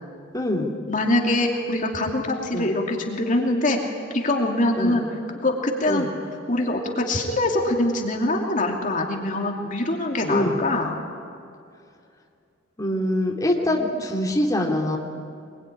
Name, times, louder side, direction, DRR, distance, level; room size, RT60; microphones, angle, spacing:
voice 1, 0.3-0.7 2.5-2.7 4.8-5.0 5.9-6.1 10.3-10.6 12.8-15.0, left 1 dB, 20° left, -1 dB, 2.7 m, -24 dB
voice 2, 0.9-6.1 6.5-11.0, left 1 dB, 40° left, 1 dB, 2.8 m, -24 dB
24.5 x 22.0 x 10.0 m, 2.4 s
head